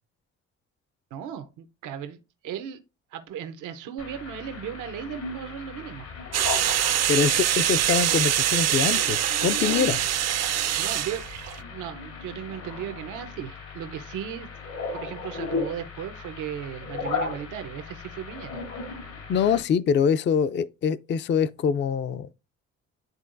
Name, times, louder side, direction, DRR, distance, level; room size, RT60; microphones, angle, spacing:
voice 1, 1.1-2.2 2.4-2.8 3.1-6.1 10.8-11.2 11.6-14.5 14.9-18.6 19.1-19.4, right 9 dB, 90° right, 0.9 m, -36 dB
sound 1, 4.0-19.6, left 4 dB, 90° left, 2.7 m, -36 dB
sound 2, 6.3-11.6, right 12 dB, 60° right, 0.5 m, -24 dB
voice 2, 7.1-10.0 19.3-22.3, left 7 dB, 40° left, 0.4 m, -24 dB
10.5 x 3.8 x 2.5 m
cardioid pair, 90°, 30 cm